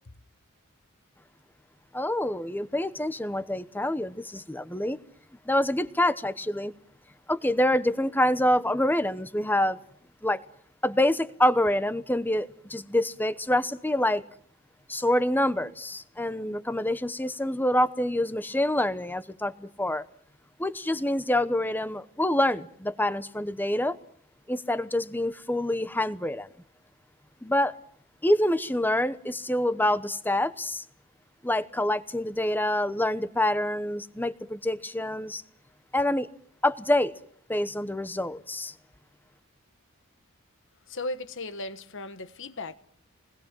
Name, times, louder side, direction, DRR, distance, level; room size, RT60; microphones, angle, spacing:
voice 1, 1.9-5.0 5.5-6.7 7.3-9.8 10.2-10.4 10.8-14.2 14.9-20.0 20.6-24.0 24.5-26.5 27.4-27.7 28.2-30.8 31.4-35.4 35.9-36.3 36.6-37.1 37.5-38.7, left 1 dB, 10° left, 1.0 m, -26 dB
voice 2, 40.9-42.7, left 2 dB, 60° left, 1.4 m, -36 dB
28.5 x 21.0 x 7.6 m
head